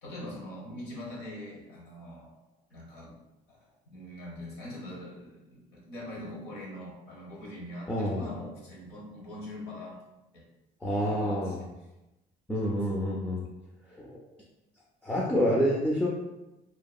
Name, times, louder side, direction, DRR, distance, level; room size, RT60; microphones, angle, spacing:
voice 1, 0.0-2.3 2.7-3.2 3.5-10.0 10.3-10.4 11.1-11.5 12.6-12.8, left 1 dB, 90° left, -4 dB, 1.0 m, -43 dB
voice 2, 7.9-8.3 10.8-11.6 12.5-13.4 14.0-14.2 15.0-16.1, equal, 5° left, -4 dB, 0.4 m, -28 dB
2.8 x 2.3 x 2.3 m, 0.97 s
cardioid pair, 110°, 17 cm